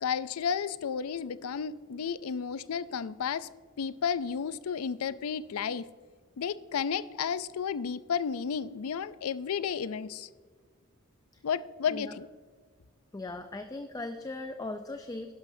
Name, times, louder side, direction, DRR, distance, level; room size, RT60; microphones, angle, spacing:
voice 1, 0.0-3.5 3.8-5.9 6.4-10.3 11.4-12.3, left 7 dB, 80° left, 16 dB, 0.4 m, -32 dB
voice 2, 13.1-15.3, left 2 dB, 15° left, 7 dB, 0.4 m, -38 dB
12.0 x 11.0 x 2.7 m, 1.5 s
head